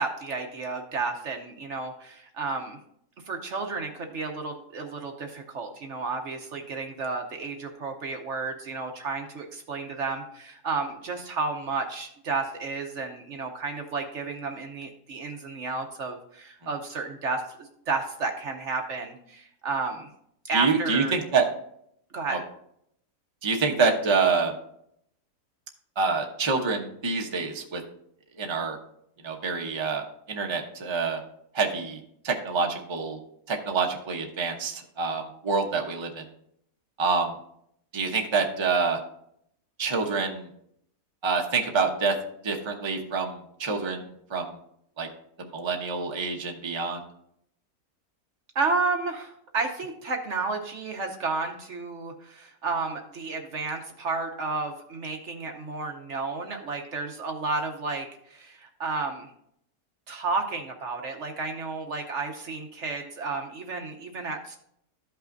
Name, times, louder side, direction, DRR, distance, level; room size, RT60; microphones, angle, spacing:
voice 1, 0.0-2.8 3.3-20.1 20.4-21.1 22.1-22.4 48.5-59.3 60.1-64.6, right 4 dB, 60° right, 4 dB, 1.1 m, -32 dB
voice 2, 20.5-21.4 22.3-22.4 23.4-24.5 26.0-27.8 28.4-28.8 29.2-31.2 31.5-33.2 33.5-36.2 37.0-37.3 37.9-39.0 39.8-40.5 41.2-42.1 42.4-44.5 45.0-45.1 45.4-47.0, right 4 dB, 25° right, 2 dB, 0.8 m, -27 dB
13.5 x 5.6 x 2.6 m, 0.71 s
omnidirectional pair, 1.5 m